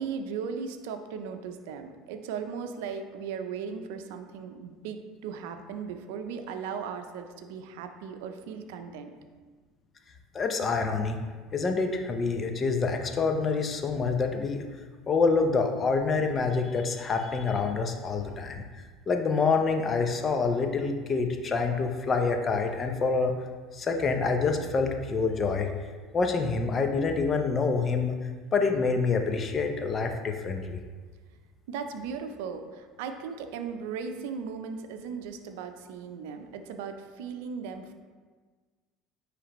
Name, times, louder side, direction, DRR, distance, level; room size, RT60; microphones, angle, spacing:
voice 1, 0.0-9.1 31.7-37.9, right 6 dB, 80° right, 7 dB, 0.5 m, -37 dB
voice 2, 10.3-11.2 11.5-14.6 15.1-18.6 19.1-23.3 23.7-25.7 26.1-28.1 28.5-30.8, left 4 dB, 35° left, 5 dB, 0.7 m, -27 dB
9.9 x 3.3 x 3.0 m, 1.5 s
supercardioid pair, 85°, 0 cm